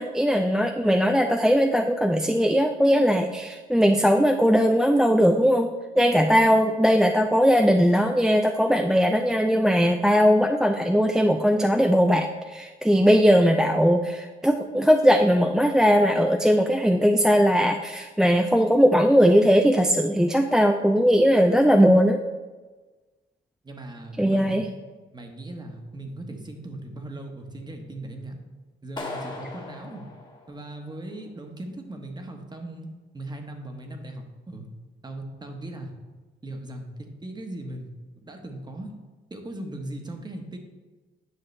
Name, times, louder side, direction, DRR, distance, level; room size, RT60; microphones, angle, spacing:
voice 1, 0.0-22.2 24.2-24.7, equal, 5° right, 4 dB, 0.4 m, -19 dB
voice 2, 23.6-24.6 25.1-28.4 28.8-30.1 30.5-32.9 33.1-34.7 35.0-35.9 36.4-37.9 38.2-38.9 39.3-40.6, right 1 dB, 20° right, 4 dB, 1.2 m, -38 dB
Clapping, 29.0-31.0, left 2 dB, 20° left, 1.4 m, -38 dB
9.5 x 5.6 x 3.3 m, 1.3 s
cardioid pair, 90°, 20 cm